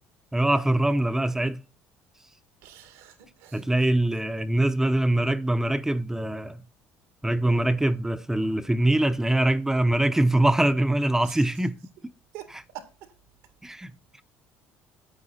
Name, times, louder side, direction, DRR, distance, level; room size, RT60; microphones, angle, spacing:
voice 1, 0.3-1.6 3.5-6.6 7.2-11.8 13.6-13.9, right 1 dB, 10° right, 0.8 m, -23 dB
voice 2, 2.6-3.7 7.4-7.6 11.2-11.5 12.3-13.1, right 10 dB, 85° right, 2.2 m, -45 dB
8.9 x 8.7 x 4.2 m
supercardioid pair, 85°, 5 cm